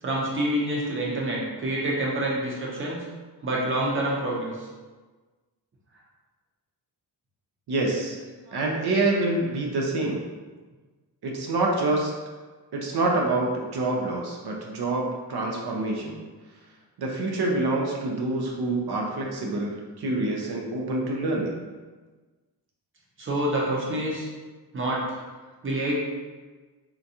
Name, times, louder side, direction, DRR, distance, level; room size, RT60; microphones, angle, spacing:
voice 1, 0.0-3.0 3.4-4.7 8.5-8.6 23.2-24.3 24.7-25.2 25.6-26.0, right 1 dB, 30° right, -4 dB, 0.7 m, -27 dB
voice 2, 7.7-8.2 8.5-10.2 11.2-12.1 12.7-16.2 17.0-21.6, right 2 dB, 70° right, -1 dB, 0.6 m, -26 dB
3.7 x 2.3 x 2.7 m, 1.3 s
wide cardioid pair, 160°, 41 cm